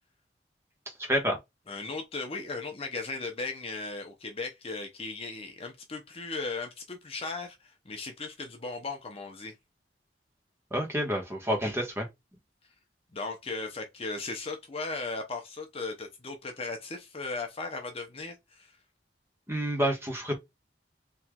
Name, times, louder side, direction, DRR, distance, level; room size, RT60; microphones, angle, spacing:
voice 1, 1.0-1.4 10.7-12.1 19.5-20.4, equal, 15° right, 1.3 m, -28 dB
voice 2, 1.7-9.5 13.1-18.7, left 3 dB, 35° left, 0.7 m, -37 dB
4.3 x 3.2 x 2.3 m
head